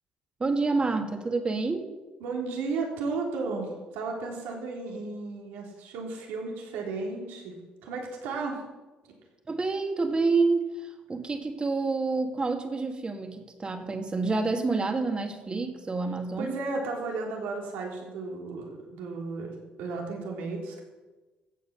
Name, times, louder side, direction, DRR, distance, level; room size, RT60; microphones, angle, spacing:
voice 1, 0.4-1.9 9.5-16.6, right 3 dB, 30° right, 5 dB, 2.1 m, -28 dB
voice 2, 2.2-7.5 7.8-8.6 9.0-9.1 16.4-19.5 19.8-20.8, right 3 dB, 90° right, 0 dB, 3.5 m, -34 dB
15.0 x 8.1 x 7.0 m, 1.2 s
cardioid pair, 80°, 3 cm